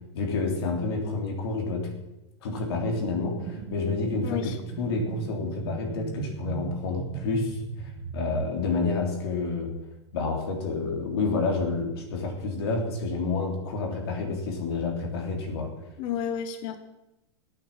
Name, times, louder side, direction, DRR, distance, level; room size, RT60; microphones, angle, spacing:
voice 1, 0.1-1.9 2.4-7.6 8.1-9.7 10.1-15.7, left 3 dB, 55° left, 2 dB, 3.3 m, -29 dB
sound 1, 2.5-8.5, right 8 dB, 35° right, 1.2 m, -38 dB
voice 2, 4.2-4.6 16.0-16.8, left 8 dB, 30° left, 9 dB, 1.1 m, -31 dB
14.0 x 8.7 x 7.3 m, 0.95 s
supercardioid pair, 170°, 15 cm